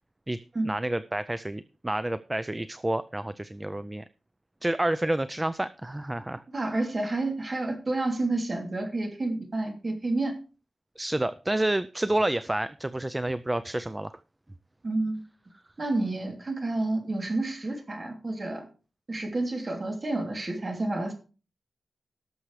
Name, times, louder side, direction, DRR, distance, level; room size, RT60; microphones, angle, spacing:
voice 1, 0.6-4.0 4.6-6.4 11.0-14.1, right 1 dB, 15° right, 13 dB, 0.4 m, -29 dB
voice 2, 6.5-10.4 14.8-15.2 15.8-18.7 19.1-21.1, right 2 dB, 35° right, 2 dB, 3.1 m, -29 dB
18.5 x 6.9 x 3.3 m, 0.34 s
wide cardioid pair, 115°, 0 cm